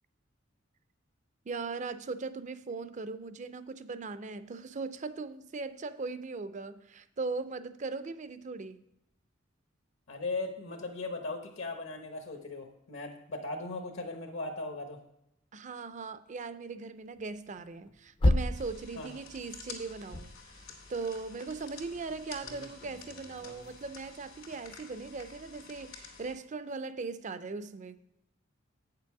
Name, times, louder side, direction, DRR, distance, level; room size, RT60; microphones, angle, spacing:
voice 1, 1.5-8.8 15.5-20.6 20.9-28.0, right 4 dB, 35° right, 0.5 m, -39 dB
voice 2, 10.1-15.0 18.9-19.2, left 2 dB, 70° left, 1.0 m, -38 dB
sound 1, 17.2-19.5 19.8-21.1 21.5-23.9 24.3-25.3, left 1 dB, 25° left, 0.5 m, -34 dB
sound 2, 18.5-26.3, left 5 dB, 90° left, 2.1 m, -50 dB
8.6 x 6.8 x 4.7 m
head